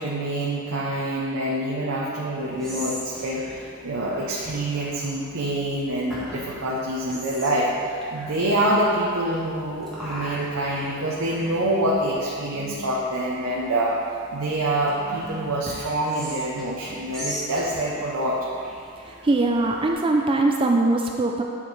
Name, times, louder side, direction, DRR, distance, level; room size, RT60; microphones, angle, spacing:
voice 1, 0.0-3.4 3.8-14.0 14.3-18.5, right 1 dB, 75° right, -5 dB, 0.8 m, -26 dB
Whispering, 2.4-19.9, equal, ahead, 1.3 m, -41 dB
voice 2, 19.0-21.4, right 2 dB, 25° right, 2 dB, 0.3 m, -21 dB
8.8 x 5.1 x 3.2 m, 2.4 s
head